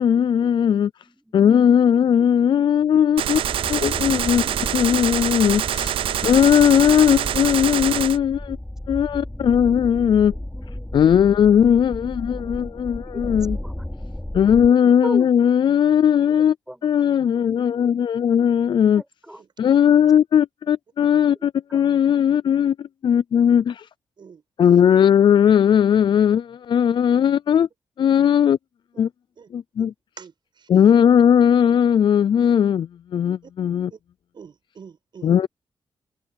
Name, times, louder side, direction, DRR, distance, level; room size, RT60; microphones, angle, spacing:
voice 1, 0.0-0.9 1.3-3.4 3.7-4.4 4.7-5.9 6.2-8.6 8.9-10.4 10.9-13.6 14.3-16.6 16.8-19.0 19.6-23.9 24.6-27.7 28.0-28.6 29.0-29.1 29.5-29.9 30.7-33.9 35.2-35.5, left 8 dB, 60° left, 0.4 m, -18 dB
voice 2, 1.0-1.3 2.2-2.7 10.5-11.6 13.1-13.2 13.6-13.7 15.0-15.3 16.2-16.9 18.9-19.4 21.4-21.8, right 1 dB, 5° right, 5.8 m, -38 dB
Gunshot gunfire, 3.2-8.2, right 11 dB, 85° right, 0.4 m, -25 dB
sound 1, 3.4-14.7, left 1 dB, 10° left, 5.2 m, -34 dB
voice 3, 19.4-19.8 24.2-24.4 28.1-28.2 28.9-29.0 29.4-29.5 29.8-29.9 30.2-30.7 33.4-33.5 33.9-34.0 34.3-35.3, right 6 dB, 60° right, 7.5 m, -46 dB
cardioid pair, 90°, 9 cm